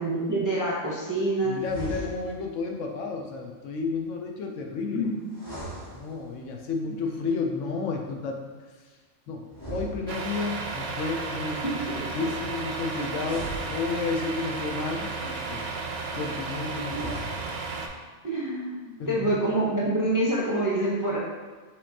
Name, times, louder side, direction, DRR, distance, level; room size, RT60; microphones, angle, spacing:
voice 1, 0.0-1.6 4.9-5.2 11.6-12.1 16.9-17.0 18.2-21.2, right 1 dB, 25° right, -6 dB, 0.4 m, -27 dB
voice 2, 1.4-5.1 5.9-8.5 9.3-11.6 12.0-15.6 16.1-17.4 19.0-19.4, left 4 dB, 70° left, 2 dB, 0.9 m, -32 dB
sound 1, 1.6-2.6 5.3-6.6 9.5-10.7 13.1-14.4 16.7-17.7, right 1 dB, 15° left, 1.3 m, -39 dB
Truck, 10.1-17.9, right 4 dB, 65° right, 0.6 m, -33 dB
5.6 x 3.4 x 2.7 m, 1.4 s
omnidirectional pair, 1.4 m